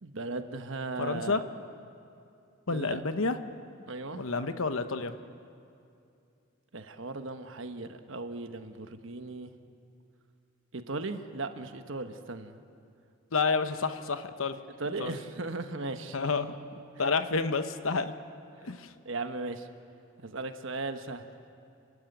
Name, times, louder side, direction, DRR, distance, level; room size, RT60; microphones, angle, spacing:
voice 1, 0.0-1.4 2.7-3.0 3.9-4.3 6.7-9.5 10.7-12.6 14.8-16.2 19.0-19.7 20.2-21.2, right 3 dB, 65° right, 8 dB, 1.1 m, -37 dB
voice 2, 1.0-1.4 2.7-3.4 4.1-5.1 13.3-14.6 15.0-15.1 16.1-16.5 17.0-18.1 18.6-18.9, left 4 dB, 75° left, 10 dB, 1.0 m, -29 dB
29.0 x 12.0 x 9.1 m, 2.5 s
head